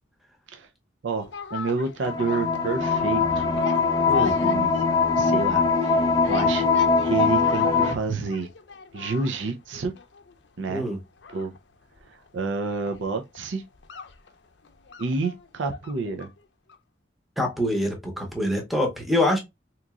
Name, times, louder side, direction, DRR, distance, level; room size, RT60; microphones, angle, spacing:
voice 1, 1.0-3.5 4.2-4.8 5.2-6.7 7.0-8.5 8.9-9.9 10.6-10.8 11.3-11.5 12.1-13.6 15.0-16.3, right 4 dB, 85° right, 0.5 m, -29 dB
sound 1, 1.2-16.4 16.7-16.8, left 4 dB, 70° left, 0.5 m, -37 dB
sound 2, 2.1-7.9, left 4 dB, 20° left, 0.3 m, -22 dB
voice 2, 4.0-4.4 10.7-11.0 17.4-19.4, left 1 dB, ahead, 0.7 m, -25 dB
3.7 x 2.9 x 2.3 m
head